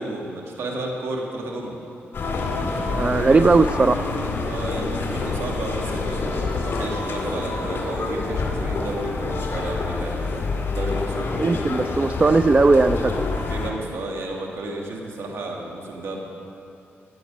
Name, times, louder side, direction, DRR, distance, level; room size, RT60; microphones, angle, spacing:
voice 1, 0.0-1.7 4.4-10.3 10.8-11.5 13.5-16.2, right 2 dB, 75° right, 0 dB, 2.2 m, -32 dB
sound 1, 2.1-13.7, left 3 dB, 55° left, 2.1 m, -27 dB
voice 2, 2.9-4.1 11.4-13.3, right 3 dB, 30° right, 10 dB, 0.4 m, -18 dB
15.0 x 9.4 x 5.4 m, 2.7 s
cardioid pair, 80°, 4 cm